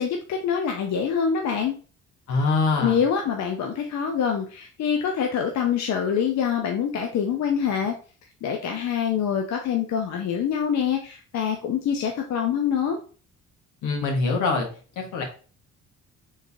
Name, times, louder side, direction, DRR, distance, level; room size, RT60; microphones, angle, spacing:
voice 1, 0.0-1.7 2.8-7.9 8.4-13.0, left 7 dB, 65° left, 3 dB, 0.6 m, -25 dB
voice 2, 2.3-3.0 13.8-14.7 15.0-15.2, left 3 dB, 80° left, 2 dB, 1.2 m, -23 dB
3.7 x 3.2 x 2.6 m, 0.39 s
cardioid pair, 90°, 30 cm